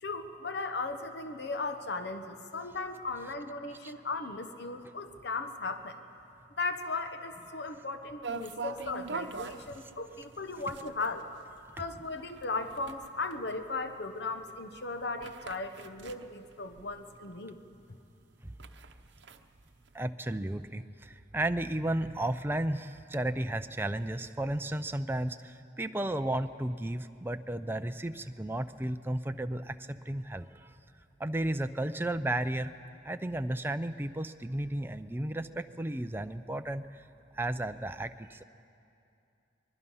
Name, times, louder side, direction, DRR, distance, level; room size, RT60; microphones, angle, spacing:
voice 1, 0.0-6.0 6.6-11.3 11.7-17.6, left 3 dB, 65° left, 7 dB, 1.0 m, -37 dB
sound 1, 8.2-17.3 17.7-17.8 18.2-20.0, right 4 dB, 70° right, 0.9 m, -43 dB
voice 2, 19.9-30.7 31.2-32.7 33.0-37.0 37.3-38.4, right 1 dB, 10° right, 8 dB, 0.5 m, -33 dB
24.0 x 20.5 x 5.6 m, 2.6 s
head